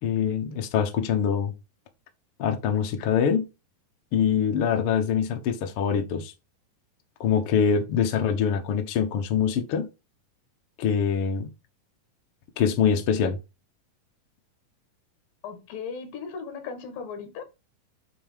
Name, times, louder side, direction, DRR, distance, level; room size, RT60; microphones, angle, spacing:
voice 1, 0.0-1.5 2.4-3.5 4.1-6.3 7.2-9.9 10.8-11.5 12.6-13.4, left 7 dB, 60° left, 1.5 m, -24 dB
voice 2, 15.4-17.4, left 5 dB, 75° left, 3.4 m, -37 dB
8.9 x 3.1 x 5.7 m
omnidirectional pair, 4.1 m